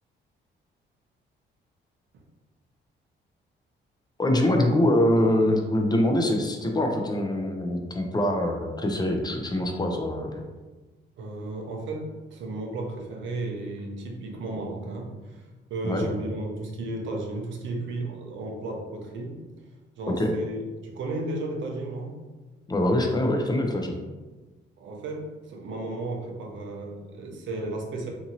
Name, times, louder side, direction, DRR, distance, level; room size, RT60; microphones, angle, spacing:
voice 1, 4.2-10.4 15.8-16.1 20.2-20.3 22.7-24.0, left 1 dB, 20° left, 3 dB, 0.4 m, -24 dB
voice 2, 11.2-15.4 15.7-19.4 20.0-22.2 24.8-28.1, right 2 dB, 70° right, 1 dB, 0.6 m, -34 dB
2.7 x 2.6 x 2.7 m, 1.2 s
cardioid pair, 90°, 20 cm